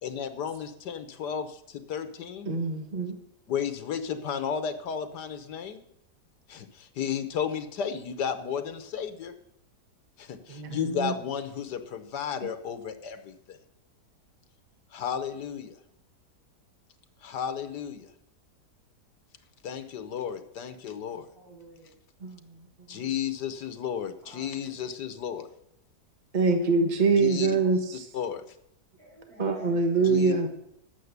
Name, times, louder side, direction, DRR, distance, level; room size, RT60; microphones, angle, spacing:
voice 1, 0.0-2.5 3.5-5.8 6.5-9.3 10.2-13.6 14.9-15.8 17.2-18.1 19.6-21.2 22.9-25.5 27.2-27.6 28.1-28.4 30.0-30.3, left 7 dB, 80° left, 9 dB, 1.7 m, -33 dB
voice 2, 2.5-3.2 10.5-11.1 22.2-22.4 22.9-23.0 26.3-28.1 29.4-30.5, right 4 dB, 30° right, 5 dB, 1.2 m, -24 dB
voice 3, 21.3-21.9 24.2-24.9 26.6-26.8 27.7-27.8 29.0-30.1, right 2 dB, 60° right, -5 dB, 7.4 m, -51 dB
11.0 x 8.5 x 8.1 m, 0.77 s
omnidirectional pair, 1.8 m